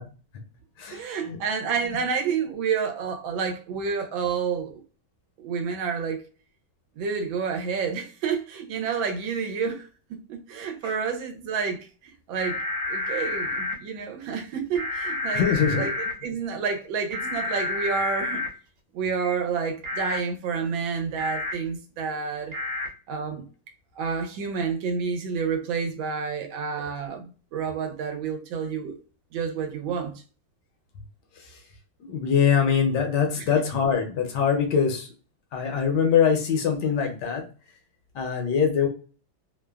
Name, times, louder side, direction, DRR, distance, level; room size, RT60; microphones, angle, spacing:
voice 1, 0.9-4.8 5.4-6.2 6.9-12.6 12.9-18.4 18.9-22.5 23.1-23.4 23.9-29.0 29.3-30.2 33.4-33.5, right 6 dB, 85° right, 1.4 m, -29 dB
sound 1, 12.4-13.7 14.7-16.1 17.1-18.5 19.8-20.2 21.2-21.5 22.5-22.9, left 3 dB, 55° right, 1.2 m, -29 dB
voice 2, 15.3-15.9 32.0-35.1 35.5-37.4 38.1-38.9, left 7 dB, 70° left, 1.2 m, -23 dB
3.2 x 2.1 x 2.2 m
omnidirectional pair, 2.1 m